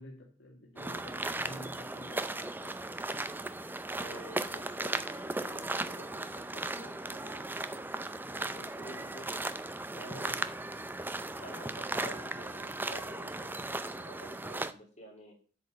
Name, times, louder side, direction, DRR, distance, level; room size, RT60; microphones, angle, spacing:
voice 1, 0.0-2.8 9.9-10.5, left 1 dB, 70° left, -1 dB, 1.7 m, -49 dB
sound 1, 0.8-14.7, right 2 dB, 10° right, 0.5 m, -37 dB
voice 2, 3.9-7.5 8.2-9.4 9.9-10.4 11.4-15.3, equal, 35° left, 0 dB, 3.3 m, -50 dB
8.0 x 5.2 x 7.5 m, 0.41 s
head